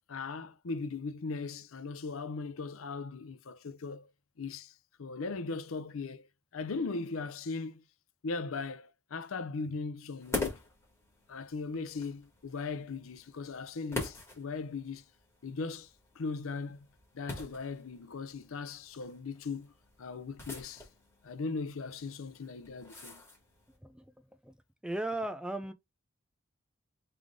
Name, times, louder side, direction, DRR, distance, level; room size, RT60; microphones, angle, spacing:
voice 1, 0.1-4.1 4.4-6.3 6.5-7.8 8.2-10.6 11.3-15.1 15.4-16.8 17.1-19.7 20.0-20.9 21.2-23.2, left 4 dB, 90° left, 0.6 m, -38 dB
sound 1, 10.2-23.8, left 2 dB, 15° left, 2.0 m, -44 dB
voice 2, 23.8-24.1 24.4-24.6 24.8-25.7, right 2 dB, 5° right, 0.4 m, -36 dB
3.7 x 3.4 x 3.5 m
head